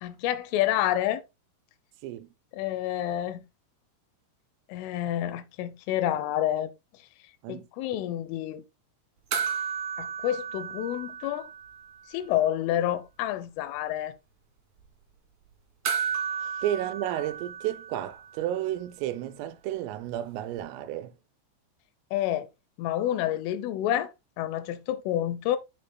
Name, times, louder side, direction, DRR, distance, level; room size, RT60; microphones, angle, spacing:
voice 1, 0.0-1.2 2.5-3.4 4.7-6.7 7.5-8.6 10.0-11.5 12.1-14.1 22.1-22.5 22.8-25.6, left 12 dB, 85° left, 3.2 m, -29 dB
sound 1, 9.3-12.0 12.2-12.3 15.8-18.4 20.6-20.7, right 7 dB, 60° right, 1.9 m, -33 dB
voice 2, 16.6-21.1, right 12 dB, 85° right, 3.4 m, -32 dB
9.4 x 7.0 x 2.2 m
omnidirectional pair, 5.7 m